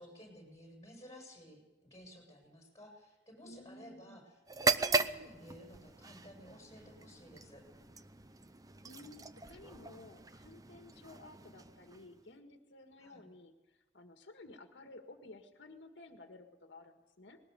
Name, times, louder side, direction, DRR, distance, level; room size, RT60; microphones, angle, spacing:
voice 1, 0.0-4.2 4.6-7.6 13.0-13.3, equal, 20° left, 0 dB, 7.1 m, -54 dB
voice 2, 3.4-4.2 8.8-17.4, left 2 dB, 80° left, 5 dB, 1.8 m, -54 dB
sound 1, 4.5-12.3, right 3 dB, 20° right, 0.7 m, -38 dB
20.5 x 19.0 x 6.8 m, 1.2 s
head